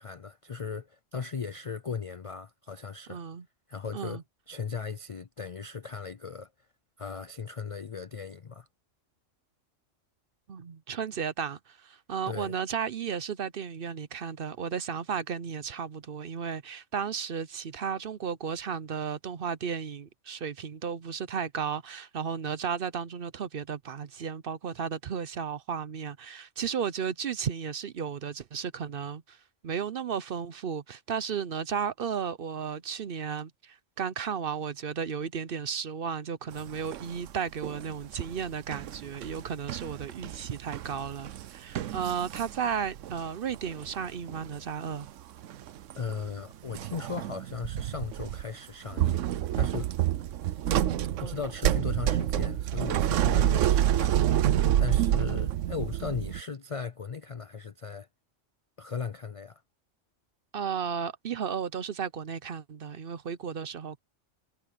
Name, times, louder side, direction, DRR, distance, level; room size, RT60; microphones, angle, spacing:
voice 1, 0.0-3.2 3.7-4.2 4.5-6.5 7.0-8.7 12.2-12.5 46.0-49.2 49.5-49.9 51.2-58.1 58.8-59.6, left 5 dB, 55° left, 0.3 m, -37 dB
voice 2, 3.1-3.5 3.9-4.2 10.5-29.4 29.6-45.1 51.2-51.4 60.5-64.0, right 7 dB, 55° right, 0.8 m, -34 dB
sound 1, 36.7-37.3 37.6-43.3 43.5-44.6 44.8-45.1 45.4-46.1 46.7-48.4 48.9-56.4, right 11 dB, 80° right, 1.0 m, -28 dB
omnidirectional pair, 1.3 m